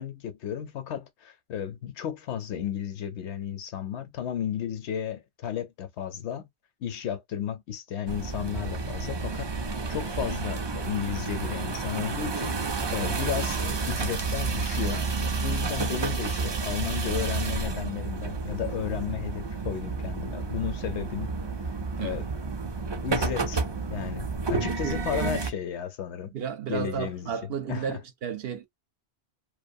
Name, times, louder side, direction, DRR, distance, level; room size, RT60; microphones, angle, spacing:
voice 1, 0.0-6.5 6.8-12.6 12.9-21.3 22.0-22.2 23.0-23.6 23.9-26.3 26.7-27.3 27.7-28.0, left 9 dB, 80° left, 0.9 m, -33 dB
sound 1, 8.1-25.5, right 4 dB, 45° right, 0.3 m, -30 dB
voice 2, 24.8-25.3 26.3-28.7, right 8 dB, 65° right, 0.8 m, -33 dB
2.5 x 2.3 x 2.5 m
omnidirectional pair, 1.1 m